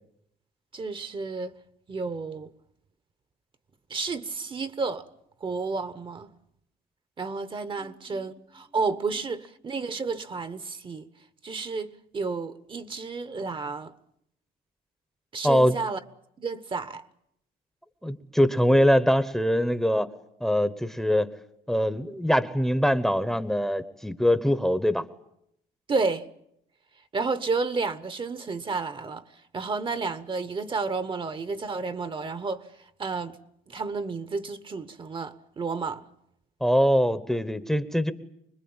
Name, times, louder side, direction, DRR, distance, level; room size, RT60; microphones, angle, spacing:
voice 1, 0.7-1.5 1.9-2.5 3.9-5.1 5.4-6.3 7.2-11.1 11.4-13.9 15.3-16.0 16.4-17.1 25.9-26.3 27.1-33.4 33.7-36.1, right 4 dB, 30° right, 1.2 m, -31 dB
voice 2, 15.4-15.7 18.0-20.1 20.4-21.3 21.7-25.0 36.6-38.1, equal, ahead, 1.1 m, -23 dB
25.5 x 21.0 x 8.9 m
cardioid pair, 110°, 17 cm